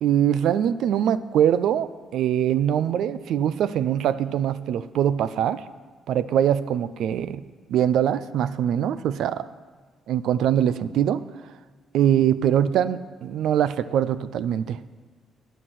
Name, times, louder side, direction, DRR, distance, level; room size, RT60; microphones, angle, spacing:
voice 1, 0.0-5.6 6.1-7.4 7.7-9.5 10.1-11.2 11.9-14.8, right 10 dB, 80° right, 14 dB, 0.5 m, -23 dB
10.0 x 9.2 x 7.9 m, 1.4 s
cardioid pair, 90°, 0 cm